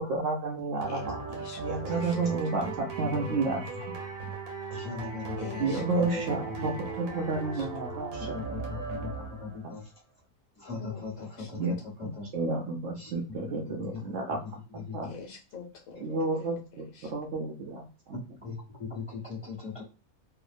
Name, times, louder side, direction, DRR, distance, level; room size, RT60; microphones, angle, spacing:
voice 1, 0.0-1.2 1.6-3.9 5.6-9.1 9.4-9.7 11.5-11.8 12.0-14.5 14.7-15.1 16.0-18.2, right 3 dB, 70° right, 0 dB, 0.8 m, -32 dB
sound 1, 0.8-9.7, right 5 dB, 85° right, 1.3 m, -38 dB
voice 2, 0.9-2.1 5.4-6.3 6.8-6.9 7.5-7.6 10.7-11.5 15.0-16.2 16.9-17.1, left 4 dB, 75° left, 1 dB, 1.2 m, -42 dB
voice 3, 4.7-5.6 6.0-6.1 8.3-9.8 10.6-11.6 12.0-12.3 13.0-13.1 13.5-14.0 14.7-15.1 18.4-19.8, left 5 dB, 25° left, -6 dB, 1.3 m, -39 dB
2.7 x 2.1 x 2.4 m, 0.34 s
omnidirectional pair, 1.5 m